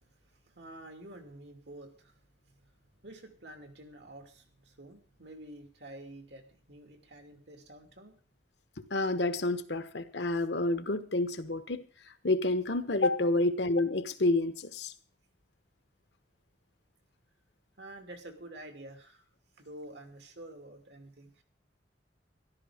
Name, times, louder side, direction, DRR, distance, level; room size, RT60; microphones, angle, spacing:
voice 1, 0.0-2.2 2.6-2.7 3.0-8.2 17.8-19.2 19.6-21.4, right 1 dB, 70° right, 6 dB, 2.7 m, -49 dB
voice 2, 8.8-11.8 12.2-14.9, left 2 dB, 75° left, 11 dB, 1.2 m, -29 dB
13.5 x 12.5 x 5.0 m, 0.42 s
head